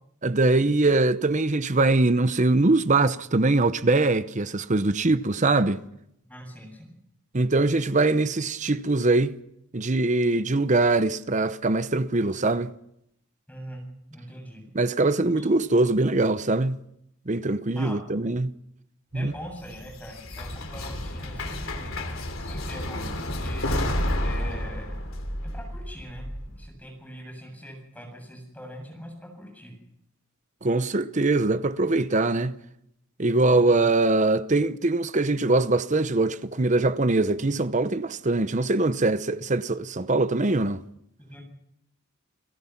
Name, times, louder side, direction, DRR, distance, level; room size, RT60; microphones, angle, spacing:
voice 1, 0.2-5.8 7.3-9.4 9.7-12.7 14.7-16.8 17.3-18.5 19.1-19.3 30.6-32.6 33.2-40.8, right 2 dB, 35° right, 0.8 m, -22 dB
voice 2, 6.2-6.9 13.5-14.6 15.3-15.5 17.7-18.2 19.1-22.0 22.4-23.8 24.2-25.0 25.4-29.7 33.5-33.8 41.2-41.4, equal, 5° left, 7.6 m, -42 dB
sound 1, 19.3-26.6, left 1 dB, 80° left, 3.1 m, -31 dB
29.0 x 17.5 x 5.9 m
head